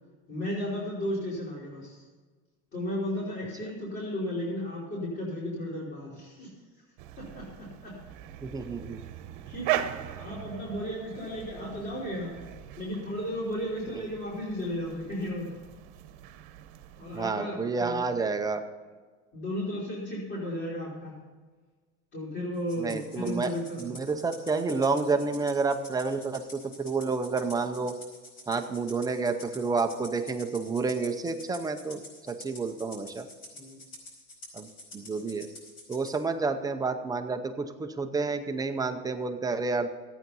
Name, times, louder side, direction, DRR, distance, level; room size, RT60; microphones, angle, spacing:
voice 1, 0.3-2.0 2.7-6.5 7.2-8.0 9.5-9.8 10.2-12.4 12.8-15.6 17.0-18.2 19.3-21.1 22.1-23.9 33.5-33.8, left 1 dB, 35° left, -6 dB, 4.1 m, -34 dB
sound 1, 7.0-17.3, right 12 dB, 65° right, 1.1 m, -39 dB
voice 2, 8.4-9.0 17.1-18.6 22.8-23.5 23.8-27.9 28.5-32.0 32.3-33.3 34.5-34.7 34.9-35.5 35.9-40.0, right 4 dB, 10° right, 6 dB, 0.6 m, -29 dB
Rattle (instrument), 22.7-36.2, left 1 dB, 55° left, 5.0 m, -48 dB
14.5 x 9.2 x 5.4 m, 1.4 s
cardioid pair, 175°, 32 cm